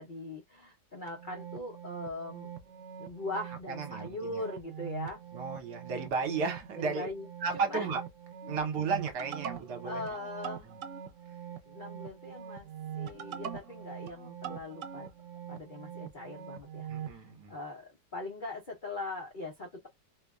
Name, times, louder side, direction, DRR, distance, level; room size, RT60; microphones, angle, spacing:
voice 1, 0.0-2.5 3.0-5.2 6.8-7.3 7.5-7.9 9.8-10.7 11.7-12.7 12.9-15.1 15.5-19.9, left 2 dB, 60° left, 0.5 m, -41 dB
sound 1, 1.1-17.2, right 9 dB, 85° right, 0.6 m, -43 dB
voice 2, 3.7-4.4 5.3-7.1 7.4-8.0 8.5-10.2 10.7-10.8 16.9-17.5, right 5 dB, 70° right, 1.4 m, -34 dB
2.9 x 2.2 x 2.3 m
omnidirectional pair, 1.9 m